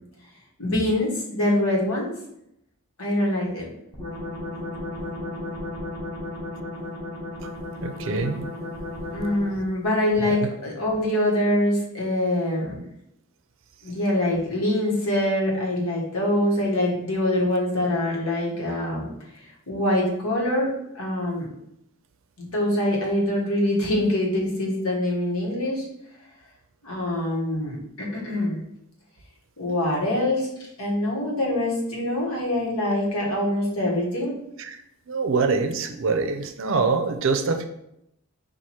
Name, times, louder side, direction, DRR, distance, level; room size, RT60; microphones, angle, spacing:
voice 1, 0.6-2.1 3.0-3.7 9.1-12.8 13.8-19.1 19.7-21.5 22.4-25.8 26.8-28.6 29.6-30.5 30.8-34.4, left 1 dB, 80° left, -2 dB, 1.4 m, -24 dB
sound 1, 3.9-9.7, left 1 dB, 20° left, 1.2 m, -34 dB
voice 2, 7.8-8.4 10.2-10.4 34.6-34.8 35.1-37.6, right 4 dB, 60° right, 7 dB, 0.5 m, -24 dB
4.6 x 2.6 x 4.2 m, 0.79 s
head